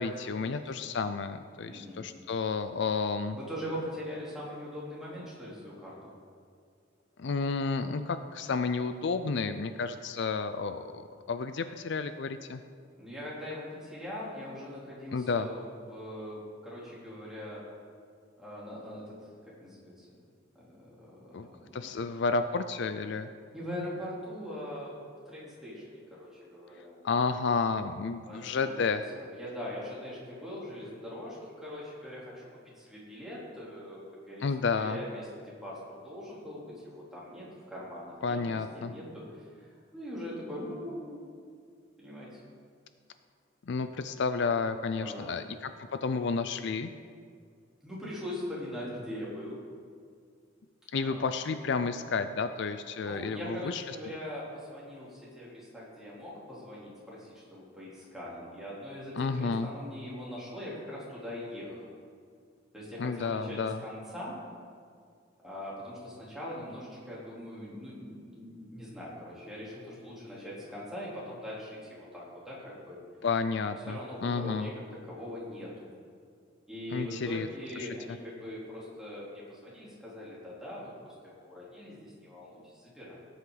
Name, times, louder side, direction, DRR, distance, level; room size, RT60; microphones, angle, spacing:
voice 1, 0.0-3.4 7.2-11.0 11.3-12.6 15.1-15.5 21.3-21.5 21.7-23.3 27.0-29.0 34.4-35.0 38.2-38.9 43.7-45.7 46.0-46.9 50.9-54.0 59.2-59.7 63.0-63.8 73.2-74.7 76.9-77.5 77.8-77.9, left 4 dB, 60° left, 10 dB, 0.5 m, -31 dB
voice 2, 1.7-2.1 3.3-6.1 13.0-17.6 18.4-19.2 19.6-20.1 20.6-22.1 23.5-27.1 28.3-39.4 39.9-41.3 42.0-42.4 45.0-45.4 47.8-49.6 51.0-51.3 53.0-61.9 62.7-64.4 65.4-73.0 73.9-75.9 76.7-83.2, left 1 dB, 5° right, -8 dB, 3.4 m, -42 dB
17.5 x 8.5 x 4.0 m, 2.1 s
head